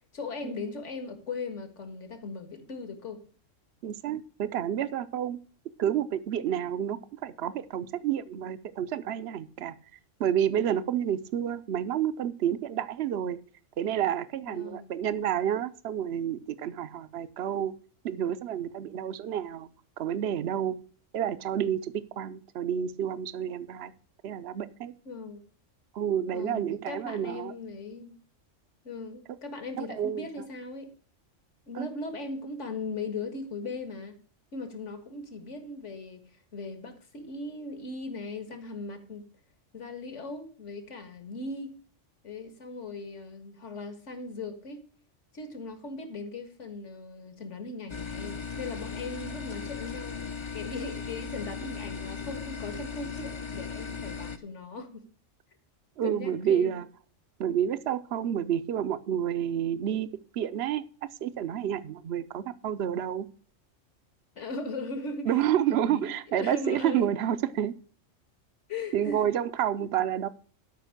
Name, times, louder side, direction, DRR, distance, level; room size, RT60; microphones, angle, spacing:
voice 1, 0.1-3.2 14.4-14.9 25.1-25.4 26.3-28.2 28.8-30.9 31.7-34.1 34.5-39.2 39.7-41.8 42.2-44.8 45.3-55.0 56.0-56.7 64.4-65.4 65.7-67.1 68.7-69.3, left 3 dB, 65° left, 8 dB, 2.0 m, -38 dB
voice 2, 3.8-5.4 5.8-9.7 10.2-13.4 13.8-17.7 18.0-19.7 20.0-20.8 21.1-23.9 24.2-24.9 25.9-27.5 29.8-30.3 31.7-31.9 56.0-56.9 57.4-60.8 61.2-63.3 65.3-67.7 68.9-70.3, right 10 dB, 60° right, 14 dB, 0.9 m, -29 dB
sound 1, 47.9-54.4, left 5 dB, 30° left, 0.6 m, -37 dB
12.5 x 5.4 x 6.5 m, 0.42 s
omnidirectional pair, 1.3 m